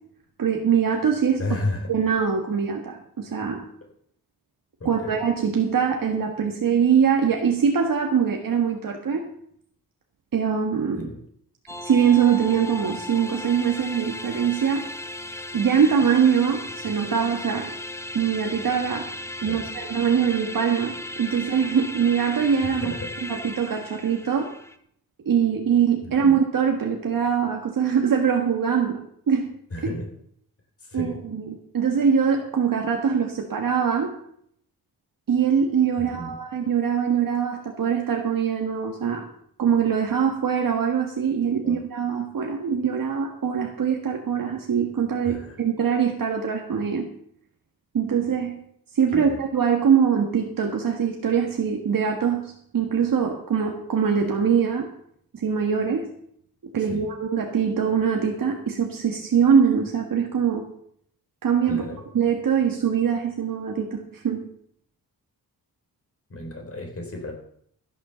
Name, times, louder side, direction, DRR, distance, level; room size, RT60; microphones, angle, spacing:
voice 1, 0.4-1.4 1.9-3.6 4.8-9.3 10.3-11.1 11.8-14.9 15.5-17.7 18.1-19.1 19.4-22.9 23.2-24.5 25.2-29.0 29.3-29.5 30.9-34.1 35.3-39.3 39.6-47.1 47.9-48.6 48.9-54.9 55.3-56.1 56.7-60.6 61.4-61.8 62.1-64.4, right 7 dB, 65° right, 2 dB, 1.7 m, -23 dB
voice 2, 1.4-1.9 4.8-5.2 11.0-11.2 19.4-19.7 22.6-23.1 26.0-26.4 29.7-30.1 30.8-31.2 36.0-36.4 41.6-41.8 45.2-45.6 49.1-49.4 56.8-57.1 61.7-62.0 66.3-67.3, left 2 dB, 40° left, 2 dB, 4.1 m, -33 dB
sound 1, 11.7-24.8, left 1 dB, 5° left, 1.0 m, -36 dB
14.5 x 6.7 x 6.9 m, 0.67 s
wide cardioid pair, 110°, 37 cm